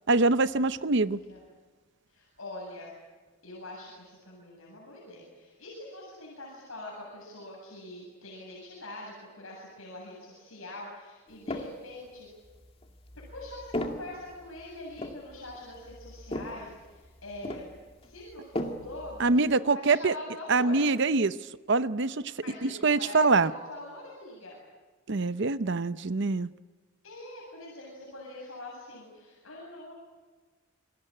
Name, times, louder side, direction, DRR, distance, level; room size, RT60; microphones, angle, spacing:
voice 1, 0.1-1.2 19.2-20.1 20.5-21.4 21.7-22.3 22.6-23.5 25.1-26.5, right 3 dB, 55° right, 0.8 m, -24 dB
voice 2, 1.1-1.4 2.1-2.9 3.4-12.3 13.3-17.7 18.0-20.8 22.4-24.6 27.0-29.9, left 1 dB, 70° left, 7.8 m, -44 dB
sound 1, 11.3-11.9 12.4-19.5, left 1 dB, 25° left, 2.2 m, -38 dB
28.5 x 21.5 x 9.0 m
head